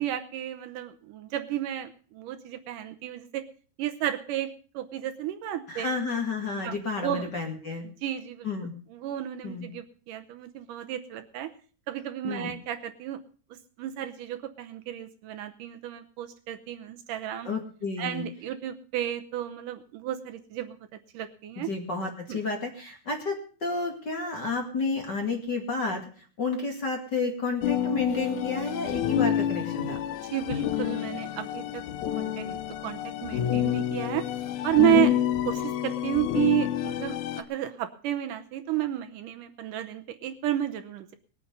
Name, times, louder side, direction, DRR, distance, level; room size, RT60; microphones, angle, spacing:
voice 1, 0.0-3.5 3.8-5.9 6.6-7.3 7.8-8.5 8.9-11.5 11.9-13.2 13.8-17.5 18.0-20.8 21.1-21.7 22.3-22.4 30.2-31.8 32.2-34.2 34.6-35.1 35.5-41.2, right 13 dB, 75° right, 8 dB, 2.3 m, -31 dB
voice 2, 5.7-7.8 8.4-8.7 9.4-9.7 12.3-12.5 17.4-18.2 21.6-26.1 26.4-30.0 34.8-35.1, left 4 dB, 35° left, 2 dB, 2.2 m, -30 dB
sound 1, 27.6-37.4, left 11 dB, 70° left, 2.1 m, -29 dB
20.0 x 8.8 x 5.3 m, 0.41 s
omnidirectional pair, 4.1 m